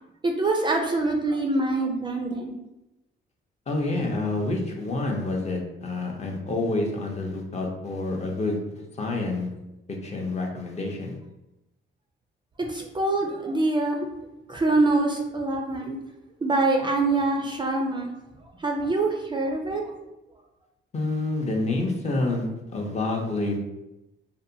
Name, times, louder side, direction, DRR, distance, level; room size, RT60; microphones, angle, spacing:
voice 1, 0.2-2.6 12.7-14.1 14.5-16.0 16.4-18.1 18.6-19.9, right 2 dB, 25° right, 1 dB, 0.4 m, -24 dB
voice 2, 3.7-8.6 9.0-9.5 9.9-11.1 20.9-23.6, left 2 dB, 35° left, 1 dB, 0.6 m, -28 dB
2.6 x 2.1 x 2.6 m, 0.93 s
cardioid pair, 90°, 20 cm